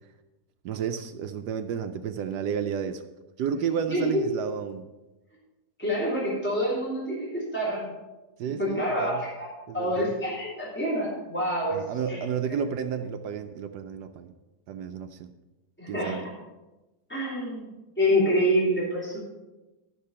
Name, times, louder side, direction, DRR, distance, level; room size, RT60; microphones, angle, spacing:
voice 1, 0.6-3.0 3.4-4.9 8.4-9.2 9.7-10.1 11.7-14.3 14.7-15.3 15.9-16.2, right 7 dB, 75° right, 8 dB, 1.2 m, -31 dB
voice 2, 3.9-4.2 5.8-7.9 8.6-9.5 9.7-11.8 12.1-12.2 15.8-16.2 17.1-17.6 18.0-19.2, equal, 5° left, -7 dB, 3.3 m, -26 dB
12.0 x 6.7 x 5.5 m, 1.1 s
omnidirectional pair, 1.8 m